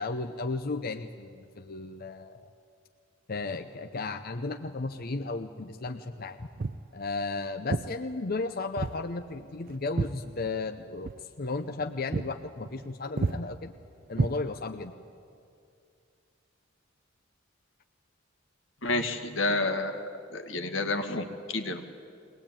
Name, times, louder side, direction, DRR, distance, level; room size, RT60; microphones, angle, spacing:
voice 1, 0.0-2.5 3.3-6.5 6.9-13.7 14.1-14.9, left 3 dB, 50° left, 7 dB, 0.7 m, -34 dB
Walk footsteps, 6.6-6.9 7.7-7.9 8.8-9.0 9.3-10.7 11.0-11.2 11.6-11.8 12.1-12.3 12.6-12.9 13.2-13.4 14.1-14.8, right 3 dB, 45° right, 0.5 m, -31 dB
voice 2, 18.8-21.8, left 2 dB, 85° left, 6 dB, 2.0 m, -30 dB
23.0 x 18.5 x 8.9 m, 2.4 s
head